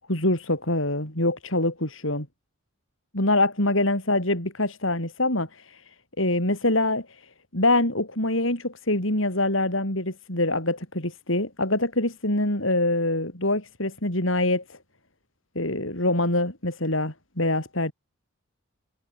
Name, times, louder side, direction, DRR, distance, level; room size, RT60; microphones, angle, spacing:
voice 1, 0.1-2.3 3.1-5.8 6.2-7.1 7.5-14.8 15.6-17.9, left 2 dB, 65° left, 7.2 m, -24 dB
head